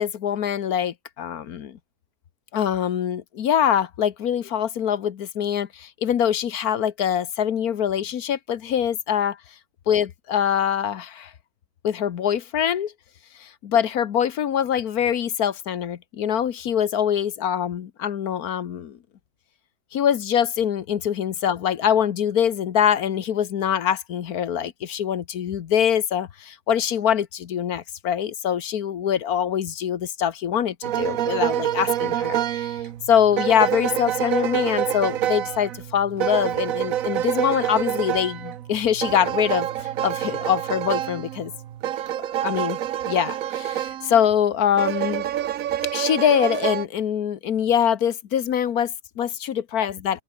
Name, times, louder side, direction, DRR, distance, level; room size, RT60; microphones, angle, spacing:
voice 1, 0.0-1.8 2.5-9.4 9.9-11.3 11.8-12.9 13.4-19.0 19.9-32.8 33.1-41.5 42.4-42.8 43.1-45.2 45.9-50.2, left 9 dB, 75° left, 1.5 m, -24 dB
sound 1, 30.8-44.3 44.8-46.8, right 11 dB, 65° right, 1.1 m, -27 dB
open air
omnidirectional pair, 1.6 m